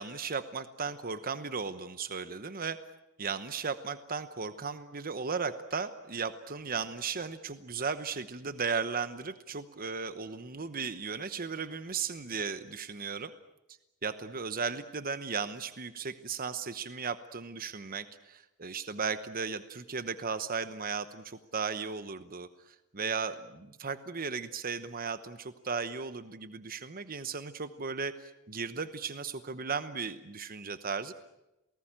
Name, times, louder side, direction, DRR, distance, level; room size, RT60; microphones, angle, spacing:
voice 1, 0.0-2.8 3.2-13.3 14.0-31.1, right 5 dB, 40° right, 12 dB, 1.0 m, -36 dB
28.0 x 19.0 x 8.9 m, 0.94 s
head